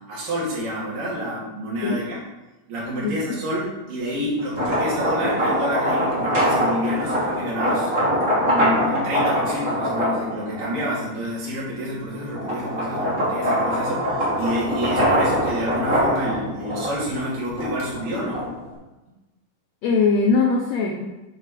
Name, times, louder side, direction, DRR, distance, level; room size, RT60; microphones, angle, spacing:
voice 1, 0.1-2.2 2.7-7.9 8.4-18.4, equal, 70° right, -7 dB, 4.1 m, -28 dB
voice 2, 3.0-3.4 19.8-21.1, left 4 dB, 85° left, 1 dB, 1.5 m, -21 dB
sound 1, 4.4-11.0 11.5-18.7, equal, 25° right, 2.7 m, -23 dB
9.2 x 4.9 x 4.9 m, 1.1 s
omnidirectional pair, 4.0 m